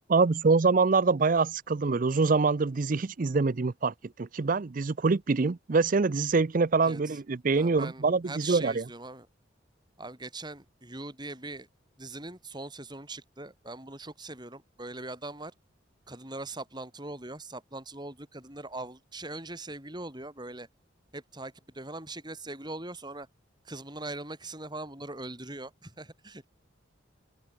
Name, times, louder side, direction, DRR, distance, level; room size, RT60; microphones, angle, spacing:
voice 1, 0.1-8.8, right 4 dB, 45° right, 0.5 m, -25 dB
voice 2, 6.8-7.2 7.6-9.3 10.0-11.7 12.0-15.5 16.1-20.7 21.1-23.3 23.6-26.5, right 2 dB, 20° right, 4.6 m, -41 dB
open air
head